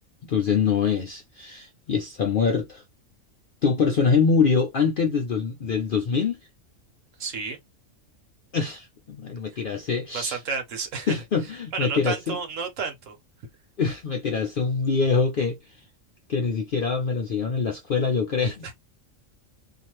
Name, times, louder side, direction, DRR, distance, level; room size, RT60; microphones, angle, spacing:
voice 1, 0.2-2.8 3.6-6.4 8.5-10.4 11.1-12.4 13.8-15.8 16.3-18.7, left 5 dB, 60° left, 0.6 m, -24 dB
voice 2, 7.2-7.6 9.5-9.6 10.1-11.2 11.7-13.2 18.6-18.7, right 5 dB, 70° right, 1.3 m, -31 dB
2.7 x 2.5 x 2.9 m
omnidirectional pair, 1.4 m